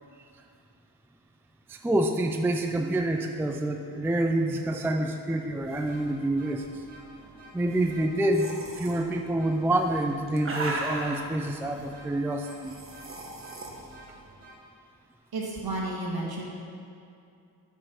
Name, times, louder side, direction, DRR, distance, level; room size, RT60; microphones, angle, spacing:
voice 1, 1.7-6.8 7.5-12.7, right 1 dB, 5° right, 4 dB, 0.4 m, -27 dB
sound 1, 5.5-14.6, right 1 dB, 85° right, 1.7 m, -50 dB
sound 2, 8.3-8.9 9.9-11.3 12.4-13.7, right 2 dB, 30° right, 1.2 m, -35 dB
voice 2, 15.3-16.4, right 2 dB, 60° right, -2 dB, 1.8 m, -31 dB
8.9 x 5.5 x 5.7 m, 2.5 s
wide cardioid pair, 110°, 41 cm